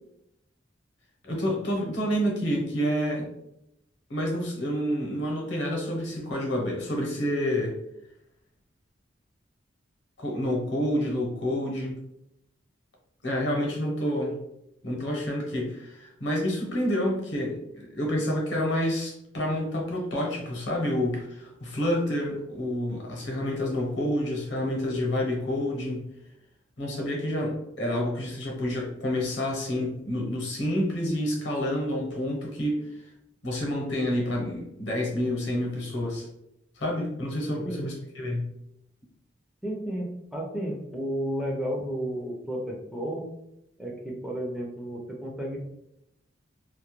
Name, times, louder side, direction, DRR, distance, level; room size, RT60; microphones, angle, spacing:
voice 1, 1.2-3.3 4.1-7.8 10.2-12.0 13.2-14.4 14.8-26.1 26.8-32.8 33.4-36.3 36.8-38.5, equal, 65° left, 0 dB, 0.8 m, -28 dB
voice 2, 39.6-43.3 43.8-45.6, equal, 5° right, -2 dB, 0.3 m, -32 dB
2.2 x 2.1 x 2.9 m, 0.82 s
head